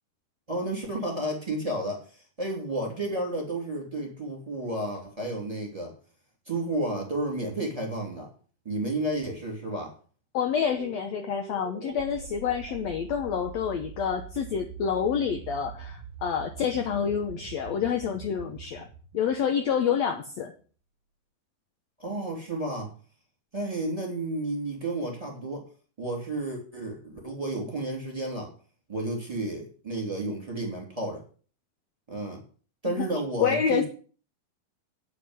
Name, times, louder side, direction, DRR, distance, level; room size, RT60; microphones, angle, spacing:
voice 1, 0.5-5.9 6.5-8.3 8.6-9.9 22.0-22.9 23.5-25.7 26.0-28.5 28.9-31.2 32.1-32.4 32.8-33.9, right 1 dB, 10° right, -1 dB, 2.5 m, -31 dB
voice 2, 10.3-18.9 19.1-20.5 32.9-33.8, left 7 dB, 80° left, 5 dB, 1.5 m, -28 dB
sound 1, 10.8-20.1, right 7 dB, 40° right, 1.2 m, -44 dB
9.7 x 5.8 x 8.0 m, 0.40 s
omnidirectional pair, 4.3 m